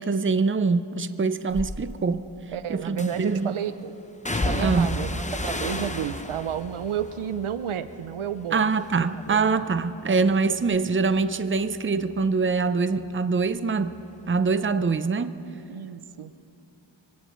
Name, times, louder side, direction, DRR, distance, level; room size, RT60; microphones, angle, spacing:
voice 1, 0.0-2.2 2.7-3.5 4.6-4.9 8.5-13.9 14.3-15.4, right 4 dB, 25° right, 12 dB, 0.6 m, -24 dB
sound 1, 1.5-1.7 3.0-3.4 4.3-8.5 8.8-9.4 9.8-13.1 13.4-14.5 14.8-14.9, left 2 dB, 15° left, 0.9 m, -33 dB
voice 2, 2.5-3.9 4.3-8.7 9.3-9.5 15.7-16.3, right 9 dB, 85° right, 12 dB, 0.7 m, -31 dB
24.0 x 17.0 x 3.1 m, 2.9 s
cardioid pair, 40°, 48 cm